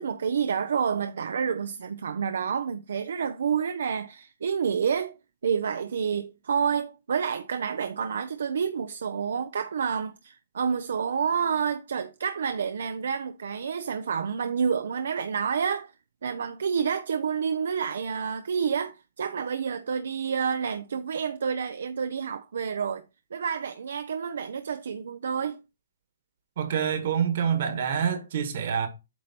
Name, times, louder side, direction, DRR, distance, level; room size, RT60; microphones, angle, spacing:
voice 1, 0.0-5.2 5.4-15.9 16.2-23.0 23.3-25.6, right 6 dB, 75° right, 0.5 m, -29 dB
voice 2, 26.6-28.9, right 7 dB, 55° right, 1.5 m, -26 dB
8.2 x 3.2 x 4.2 m
hypercardioid pair, 145°, 0 cm